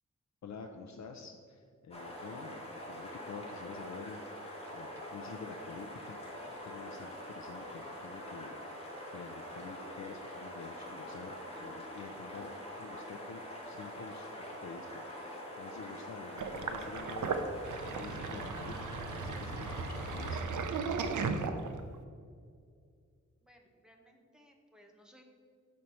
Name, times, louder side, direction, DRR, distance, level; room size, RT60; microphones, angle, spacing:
voice 1, 0.4-20.4, left 5 dB, 65° left, 4 dB, 0.5 m, -48 dB
sound 1, 1.9-20.4, equal, 20° left, 1.5 m, -45 dB
Sink (filling or washing), 16.4-22.0, right 5 dB, 85° right, 0.6 m, -36 dB
voice 2, 23.4-25.2, equal, ahead, 2 dB, 0.7 m, -61 dB
6.3 x 4.4 x 5.4 m, 2.2 s
wide cardioid pair, 180°, 30 cm